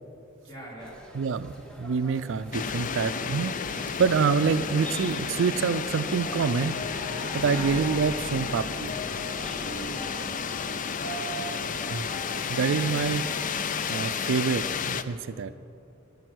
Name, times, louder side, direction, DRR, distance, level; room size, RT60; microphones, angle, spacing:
voice 1, 0.4-1.1 7.4-7.8 9.6-10.3 10.7-12.0 15.4-15.6, right 2 dB, 25° left, -5 dB, 3.9 m, -44 dB
sound 1, 0.8-14.9, equal, 5° left, 1.5 m, -46 dB
voice 2, 1.1-6.8 7.3-8.9 11.9-12.1 12.5-13.3 13.9-15.5, right 5 dB, 65° right, 13 dB, 0.4 m, -26 dB
sound 2, 2.5-15.0, left 6 dB, 40° left, 0.4 m, -32 dB
sound 3, 6.0-13.5, equal, 60° left, 4.0 m, -41 dB
12.5 x 11.5 x 6.2 m, 2.6 s
head